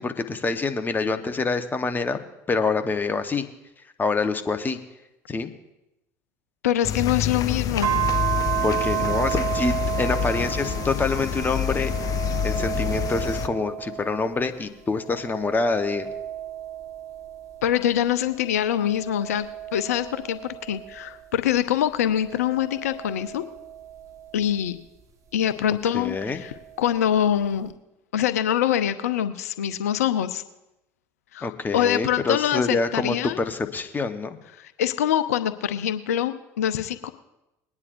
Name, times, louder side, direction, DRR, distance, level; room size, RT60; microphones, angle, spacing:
voice 1, 0.0-2.2 2.5-3.5 4.0-4.8 5.3-5.5 8.6-11.9 12.4-16.1 25.9-26.4 31.4-34.4, left 4 dB, 25° left, 8 dB, 1.1 m, -26 dB
voice 2, 6.6-8.0 17.6-19.5 19.7-23.4 24.3-24.8 25.3-27.7 28.1-30.4 31.3-33.4 34.6-37.1, left 10 dB, 80° left, 11 dB, 0.6 m, -24 dB
sound 1, 6.8-13.5, left 10 dB, 45° left, 0.7 m, -27 dB
sound 2, 7.8-14.5 15.0-17.9 18.5-21.3 22.0-24.5 25.8-26.9, right 12 dB, 40° right, 1.6 m, -32 dB
21.5 x 9.7 x 2.6 m, 0.93 s
hypercardioid pair, 70°, 8 cm